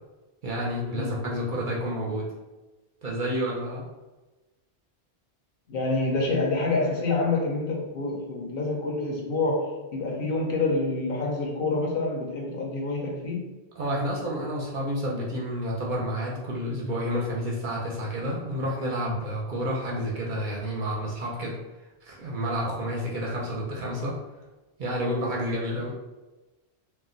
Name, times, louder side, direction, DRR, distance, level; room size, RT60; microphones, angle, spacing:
voice 1, 0.4-2.3 3.0-3.9 13.8-21.6 22.0-24.2 24.8-25.9, equal, 55° right, -3 dB, 0.7 m, -30 dB
voice 2, 5.7-13.5, left 3 dB, 60° left, -2 dB, 0.7 m, -27 dB
2.4 x 2.1 x 3.7 m, 1.1 s
omnidirectional pair, 1.1 m